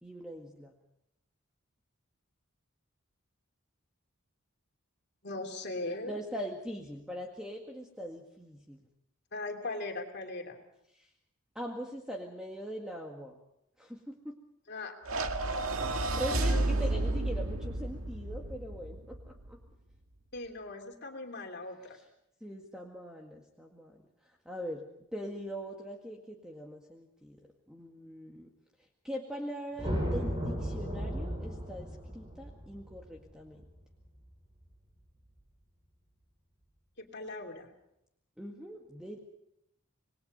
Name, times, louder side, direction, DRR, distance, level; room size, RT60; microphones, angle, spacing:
voice 1, 0.0-0.7 6.0-8.8 10.9-11.1 11.6-13.4 13.8-14.4 16.1-19.6 21.9-22.0 22.4-27.4 27.7-28.5 29.0-33.6 38.4-39.2, equal, 5° right, 0 dB, 1.9 m, -42 dB
voice 2, 5.2-6.2 9.3-10.6 14.7-14.9 16.5-16.6 20.3-22.0 37.0-37.7, left 2 dB, 50° left, 3 dB, 3.0 m, -39 dB
sound 1, 15.1-19.5, right 2 dB, 80° right, 1.9 m, -31 dB
sound 2, 29.8-34.2, equal, 25° right, 7.6 m, -35 dB
27.0 x 20.5 x 5.4 m, 0.81 s
head